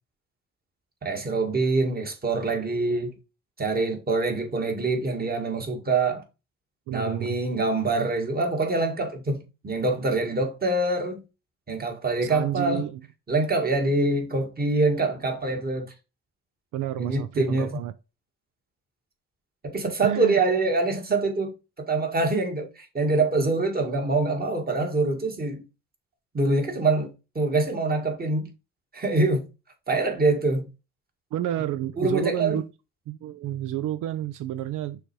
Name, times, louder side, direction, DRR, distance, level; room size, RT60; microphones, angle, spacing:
voice 1, 1.0-3.2 3.6-6.2 6.9-11.2 11.7-12.9 13.3-15.9 16.9-17.7 19.6-25.6 26.3-28.5 28.9-29.4 29.9-30.7 32.0-32.6, right 3 dB, 30° right, 1.9 m, -25 dB
voice 2, 6.9-7.4 12.2-13.0 16.7-17.9 20.0-20.4 31.3-32.6 33.1-35.0, right 12 dB, 80° right, 0.5 m, -30 dB
6.4 x 3.3 x 4.7 m
cardioid pair, 90°, 30 cm